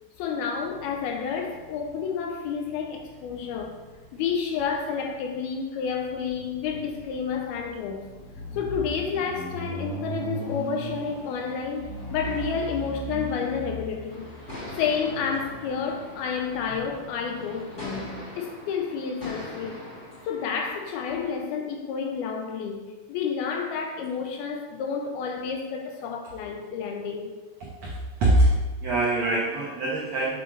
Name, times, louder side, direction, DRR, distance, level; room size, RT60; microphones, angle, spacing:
voice 1, 0.2-3.8 4.1-8.1 8.5-14.3 14.8-19.8 20.2-27.3, left 6 dB, 80° left, 3 dB, 2.4 m, -30 dB
sound 1, 0.6-17.8, right 1 dB, 60° left, 3.9 m, -40 dB
sound 2, 14.1-21.3, left 1 dB, 35° left, 1.2 m, -42 dB
voice 2, 27.8-28.5 28.8-30.4, right 1 dB, 85° right, -5 dB, 1.4 m, -23 dB
7.9 x 7.2 x 3.3 m, 1.2 s
omnidirectional pair, 4.7 m